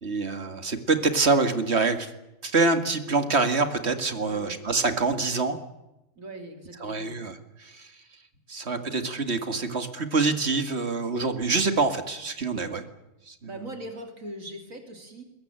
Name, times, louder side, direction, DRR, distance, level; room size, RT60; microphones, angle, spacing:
voice 1, 0.0-2.1 2.4-5.6 6.8-7.9 8.5-12.8 13.3-13.4, right 3 dB, 50° right, 8 dB, 2.3 m, -25 dB
voice 2, 4.3-4.6 6.2-7.3 12.5-12.8 13.5-15.2, right 1 dB, 75° right, 5 dB, 3.5 m, -41 dB
22.0 x 21.0 x 9.0 m, 0.93 s
omnidirectional pair, 1.4 m